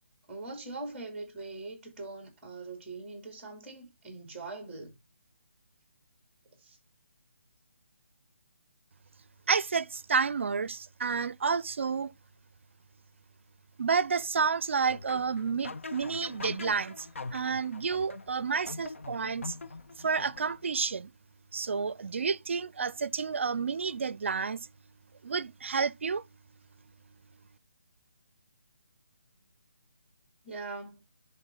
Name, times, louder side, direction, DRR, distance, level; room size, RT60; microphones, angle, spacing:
voice 1, 0.3-5.0 6.6-6.8 30.4-31.0, right 3 dB, 10° right, 2.9 m, -42 dB
voice 2, 9.5-12.1 13.8-19.6 20.0-21.1 21.5-24.6 25.2-26.2, right 5 dB, 70° right, 0.5 m, -30 dB
sound 1, 14.9-20.8, left 3 dB, 80° left, 0.7 m, -43 dB
11.0 x 3.7 x 3.8 m
hypercardioid pair, 160°, 7 cm